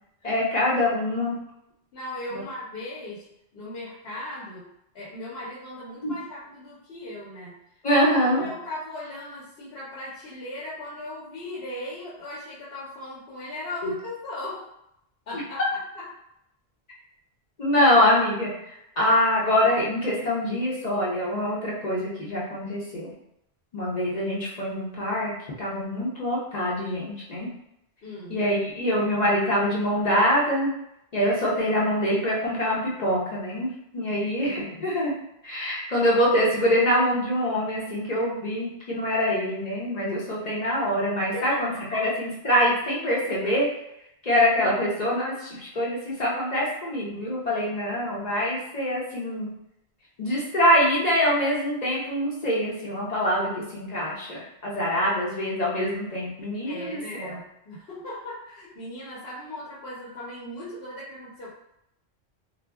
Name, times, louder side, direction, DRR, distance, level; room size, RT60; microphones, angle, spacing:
voice 1, 0.2-1.4 6.0-6.1 7.8-8.5 13.8-13.9 15.3-15.4 17.6-18.5 19.0-23.1 23.7-25.3 25.6-27.5 28.3-30.7 31.1-35.1 35.4-43.7 44.2-49.5 50.2-57.3, equal, 45° left, -6 dB, 0.7 m, -24 dB
voice 2, 1.9-3.3 3.5-4.7 4.9-7.6 8.4-14.7 15.3-16.1 28.0-28.4 41.3-42.1 44.6-44.7 56.6-61.5, left 1 dB, 65° left, -8 dB, 1.0 m, -38 dB
2.2 x 2.1 x 3.4 m, 0.80 s
omnidirectional pair, 1.1 m